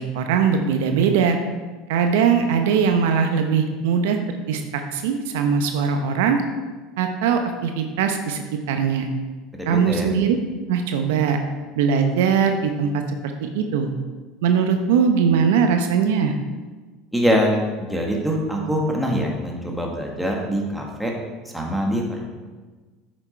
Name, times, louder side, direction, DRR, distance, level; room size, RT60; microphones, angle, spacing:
voice 1, 0.0-1.4 1.9-4.2 4.5-6.4 7.0-9.1 9.7-10.4 10.7-11.4 11.7-13.9 14.4-16.3, right 6 dB, 80° right, 6 dB, 0.8 m, -21 dB
voice 2, 9.5-10.1 17.1-21.1 21.5-22.2, equal, ahead, -1 dB, 2.0 m, -23 dB
9.0 x 6.3 x 4.5 m, 1.3 s
hypercardioid pair, 90°, 0 cm